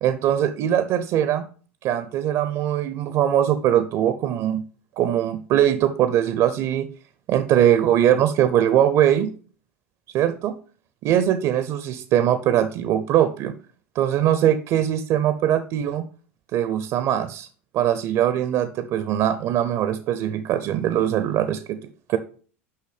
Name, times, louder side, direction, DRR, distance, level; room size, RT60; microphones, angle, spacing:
voice 1, 0.0-1.5 1.8-4.6 5.0-6.9 7.3-9.3 10.1-10.5 11.0-13.5 14.0-16.1 16.5-17.5 17.7-21.8 22.1-22.2, right 11 dB, 50° right, 11 dB, 0.6 m, -21 dB
5.7 x 5.7 x 4.9 m, 0.41 s
hypercardioid pair, 80°, 7 cm